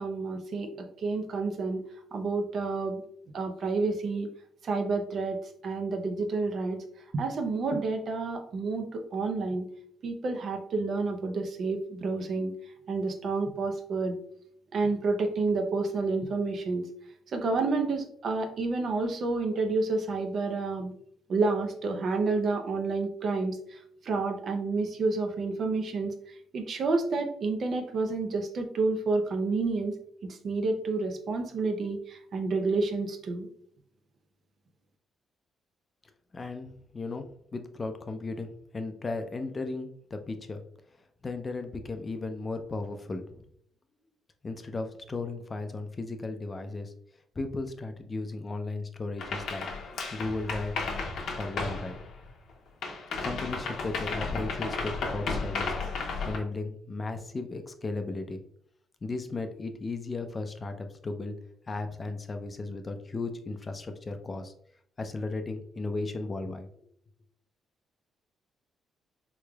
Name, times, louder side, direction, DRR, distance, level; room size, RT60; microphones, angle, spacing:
voice 1, 0.0-1.8 2.1-3.0 3.3-4.3 4.6-6.8 7.1-9.7 10.0-12.5 12.9-14.2 14.7-16.9 17.3-20.9 21.3-29.9 30.2-33.5, right 3 dB, 55° right, 5 dB, 0.6 m, -29 dB
voice 2, 36.3-40.6 41.2-43.5 44.4-46.9 47.4-49.7 50.1-50.7 51.4-52.0 53.2-55.7 56.2-58.4 59.0-61.4 61.7-64.5 65.0-66.7, left 3 dB, 30° left, 7 dB, 0.5 m, -35 dB
sound 1, 49.2-52.5 52.8-56.4, left 4 dB, 70° left, 0.8 m, -33 dB
3.7 x 3.1 x 2.2 m, 0.66 s
cardioid pair, 90°, 0 cm